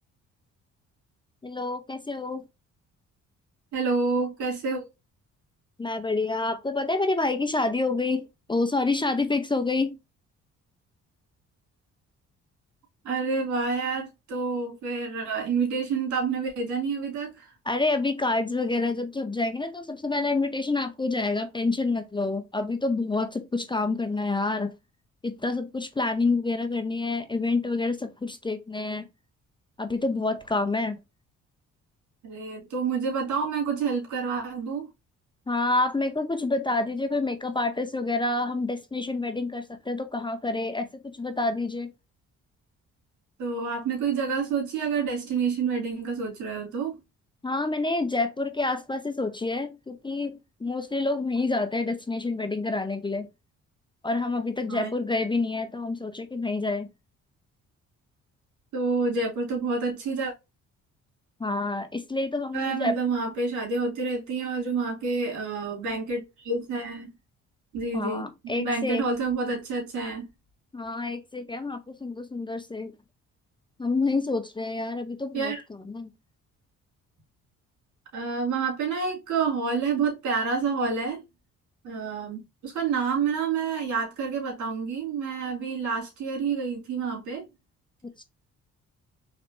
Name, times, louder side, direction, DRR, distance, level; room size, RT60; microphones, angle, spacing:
voice 1, 1.4-2.4 5.8-9.9 17.7-24.7 25.2-29.1 29.8-31.0 35.5-41.9 47.4-53.3 54.0-56.9 61.4-62.9 67.9-69.0 70.7-72.9 73.8-75.5 75.9-76.1 88.2-88.3, left 3 dB, 15° left, 0.6 m, -28 dB
voice 2, 3.7-4.9 13.0-17.5 32.2-34.9 43.4-47.0 54.7-54.9 58.7-60.3 62.5-67.1 67.7-68.3 68.6-70.3 75.3-75.6 78.1-81.2 81.8-87.5, right 4 dB, 75° right, 2.3 m, -28 dB
4.1 x 3.3 x 2.5 m
cardioid pair, 90°, 30 cm